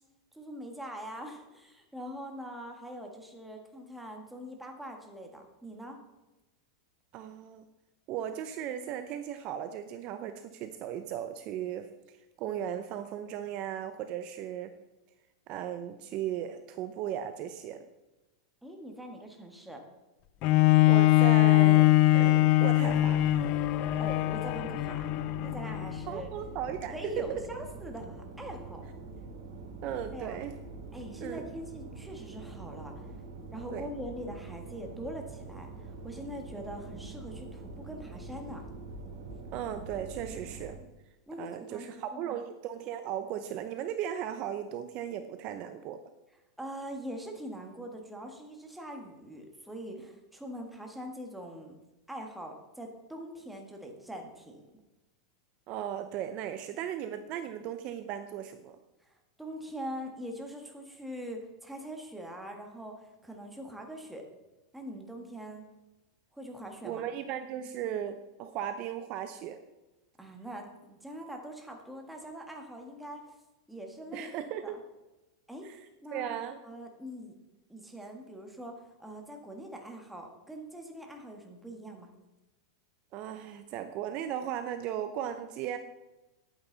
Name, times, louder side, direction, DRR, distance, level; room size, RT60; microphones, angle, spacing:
voice 1, 0.3-6.0 18.6-19.8 23.7-25.1 25.4-26.3 26.9-28.9 30.1-30.4 30.9-33.1 33.5-38.7 41.3-41.9 42.1-42.4 46.6-51.8 52.1-54.6 59.4-64.2 64.7-65.6 66.3-67.0 70.2-73.2 73.7-74.3 74.6-74.8 75.5-75.7 76.0-76.4 76.6-77.3 77.7-82.1, equal, 5° right, 2 dB, 1.7 m, -43 dB
voice 2, 7.1-7.6 8.1-14.7 15.5-17.9 20.9-23.3 26.1-27.4 29.8-30.5 31.2-31.4 33.7-33.9 39.5-40.7 41.4-46.0 55.7-58.8 66.8-69.6 74.1-74.8 75.6-75.8 76.1-76.6 83.1-85.8, right 10 dB, 40° right, 9 dB, 0.7 m, -36 dB
Bowed string instrument, 20.4-26.0 26.7-26.8, left 17 dB, 45° left, 0.4 m, -23 dB
sound 1, 22.8-40.8, right 3 dB, 75° right, 3.3 m, -44 dB
10.5 x 8.9 x 4.0 m, 1.0 s
supercardioid pair, 140°, 3 cm